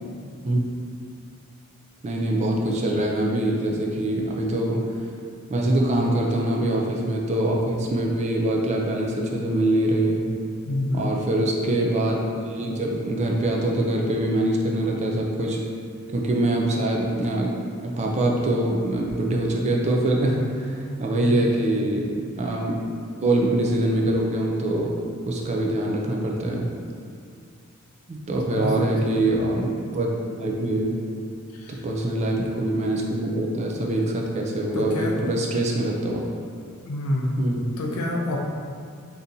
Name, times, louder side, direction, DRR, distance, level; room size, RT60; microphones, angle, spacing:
voice 1, 2.0-4.8 5.5-10.3 10.9-12.2 12.4-15.6 16.1-17.5 17.8-22.1 22.4-22.8 23.2-24.9 25.3-26.7 28.1-30.1 30.4-30.9 31.7-36.2 37.4-37.7, right 1 dB, 30° right, -1 dB, 0.3 m, -24 dB
voice 2, 10.7-11.1 21.2-21.6 28.5-28.9 31.5-31.8 34.7-35.2 36.8-37.5 37.8-38.4, left 1 dB, 85° left, 0 dB, 0.5 m, -28 dB
3.7 x 2.7 x 2.6 m, 2.3 s
head